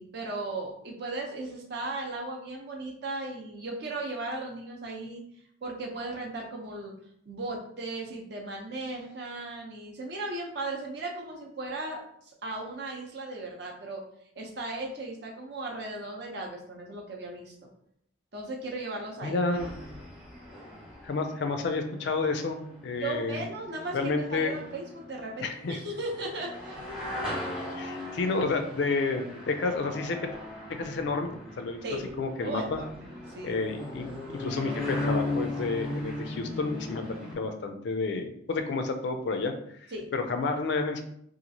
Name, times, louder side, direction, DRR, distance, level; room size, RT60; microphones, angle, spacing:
voice 1, 0.0-5.2 5.6-6.9 7.3-14.0 14.4-17.7 18.3-19.3 23.0-26.9 31.8-33.6 39.9-40.1, right 2 dB, 55° right, 0 dB, 0.6 m, -37 dB
voice 2, 19.2-19.8 21.0-23.4 23.9-24.6 25.4-25.8 27.8-30.3 30.7-31.8 32.2-32.8 33.4-34.1 34.4-39.5 39.8-41.0, left 3 dB, 55° left, 7 dB, 0.3 m, -30 dB
sound 1, 19.5-37.3, left 2 dB, 5° right, 0.8 m, -38 dB
2.9 x 2.4 x 2.6 m, 0.69 s
head